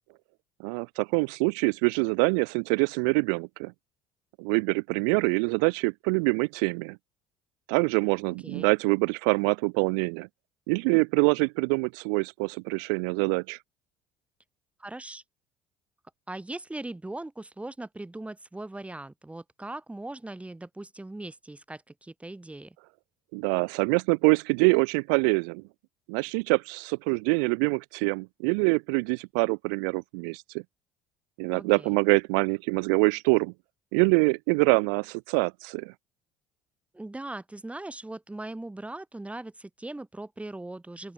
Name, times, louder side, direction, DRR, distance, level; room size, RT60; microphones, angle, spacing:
voice 1, 0.6-3.7 4.4-7.0 7.7-10.3 10.7-13.6 23.3-25.6 26.1-30.6 31.4-33.5 33.9-35.9, right 36 dB, 70° right, 0.4 m, -25 dB
voice 2, 8.4-8.7 14.8-15.2 16.3-22.8 31.5-32.0 36.9-41.1, right 2 dB, 10° right, 6.0 m, -40 dB
open air
hypercardioid pair, 60°, 11 cm